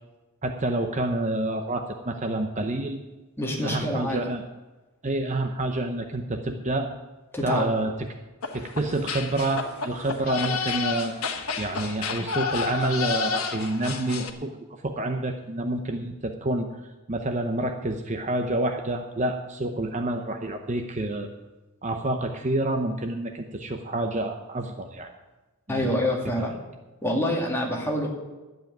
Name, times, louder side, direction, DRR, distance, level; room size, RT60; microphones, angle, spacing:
voice 1, 0.4-3.0 3.6-4.4 5.0-6.9 7.4-8.1 8.5-11.1 11.6-21.3 21.8-25.1 25.7-26.0 26.4-26.5, right 2 dB, 35° right, 5 dB, 0.8 m, -28 dB
voice 2, 3.4-4.2 7.3-7.7 25.7-26.6 27.0-28.1, left 1 dB, 10° left, -1 dB, 2.3 m, -26 dB
sound 1, 8.4-14.3, left 5 dB, 80° left, 1.3 m, -30 dB
11.5 x 7.8 x 9.2 m, 1.2 s
head